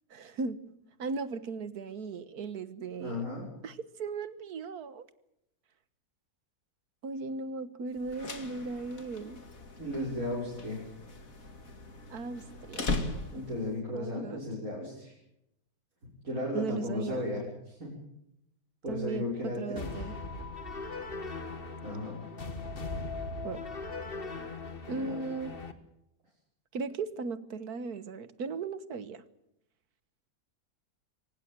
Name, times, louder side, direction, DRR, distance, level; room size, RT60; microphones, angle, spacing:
voice 1, 0.1-3.2 3.6-5.1 7.0-9.4 12.1-12.9 13.9-14.4 16.5-17.3 18.9-20.2 23.4-23.6 24.9-25.5 26.7-29.2, right 4 dB, 80° right, 14 dB, 1.8 m, -37 dB
voice 2, 3.0-3.5 9.8-10.8 13.3-15.1 16.0-17.9 18.8-20.0 21.8-22.2 24.9-25.2, left 1 dB, 65° right, -5 dB, 6.7 m, -35 dB
sound 1, 8.0-13.7, left 3 dB, 60° left, 2.7 m, -39 dB
sound 2, 19.8-25.7, left 3 dB, 40° left, 1.8 m, -39 dB
24.0 x 19.0 x 7.6 m, 0.81 s
omnidirectional pair, 1.6 m